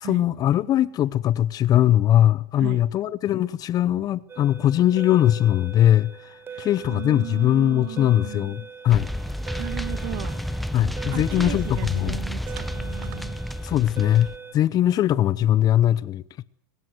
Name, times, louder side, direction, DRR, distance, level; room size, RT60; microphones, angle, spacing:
voice 1, 0.0-9.1 10.7-12.2 13.6-14.3 14.5-16.4, left 12 dB, 35° left, 0.8 m, -21 dB
sound 1, 4.3-14.5, right 6 dB, 20° right, 1.7 m, -42 dB
voice 2, 6.5-8.5 9.6-10.4 11.1-13.4, right 19 dB, 65° right, 1.7 m, -36 dB
sound 2, 8.9-14.4, equal, ahead, 1.0 m, -31 dB
22.5 x 20.0 x 8.0 m
hypercardioid pair, 110°, 10 cm